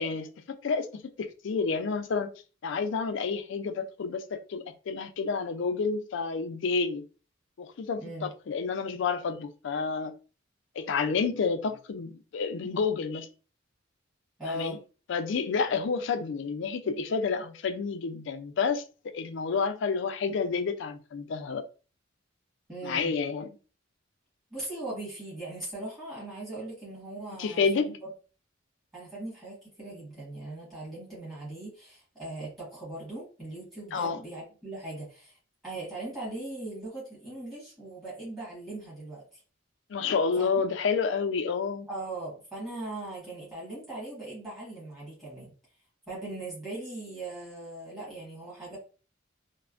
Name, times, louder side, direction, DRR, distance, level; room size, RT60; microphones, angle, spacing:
voice 1, 0.0-2.3 2.6-7.1 7.6-10.1 10.8-13.3 14.4-14.8 15.1-21.7 22.8-23.6 27.4-27.9 33.9-34.2 39.9-41.9, left 5 dB, 65° left, 0.4 m, -30 dB
voice 2, 8.0-8.3 14.4-14.8 22.7-23.1 24.5-27.9 28.9-35.4 35.6-39.4 40.4-40.5 41.9-45.5 46.1-48.8, right 2 dB, 20° right, 1.4 m, -39 dB
3.2 x 2.1 x 2.4 m
head